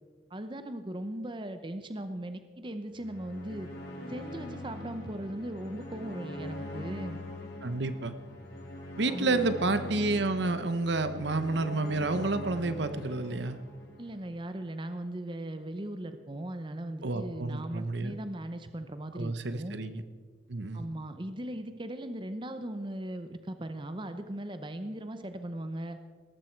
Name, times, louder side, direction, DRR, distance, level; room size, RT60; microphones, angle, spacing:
voice 1, 0.3-3.7 4.1-7.2 9.1-9.5 14.0-19.8 20.7-26.0, right 1 dB, 25° right, 9 dB, 0.7 m, -38 dB
sound 1, 2.9-14.3, left 1 dB, 60° left, 3.6 m, -42 dB
voice 2, 7.6-8.1 9.0-13.6 17.0-18.2 19.1-20.0 20.5-20.8, right 2 dB, 60° right, 11 dB, 0.9 m, -30 dB
18.0 x 14.0 x 4.6 m, 1.5 s
head